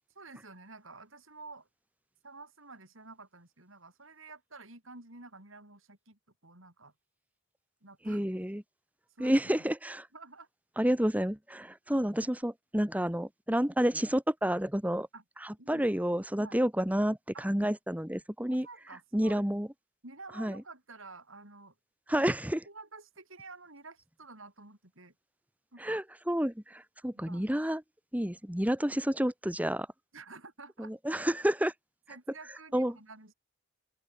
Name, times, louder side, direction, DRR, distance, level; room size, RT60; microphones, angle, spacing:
voice 1, 0.1-1.7 2.2-6.9 7.8-8.4 9.1-9.6 10.1-10.5 15.1-15.2 15.6-16.1 16.4-16.6 17.3-17.5 18.4-19.4 20.0-21.7 22.1-22.2 22.6-25.1 25.7-26.0 27.1-27.5 30.1-30.9 32.1-33.3, right 3 dB, 70° right, 6.7 m, -50 dB
voice 2, 8.1-8.6 9.2-10.1 10.8-15.1 15.4-18.7 19.1-19.7 20.4-20.6 22.1-22.6 25.8-27.8 28.1-29.9 30.8-31.7 32.7-33.0, equal, 5° right, 1.2 m, -30 dB
open air
head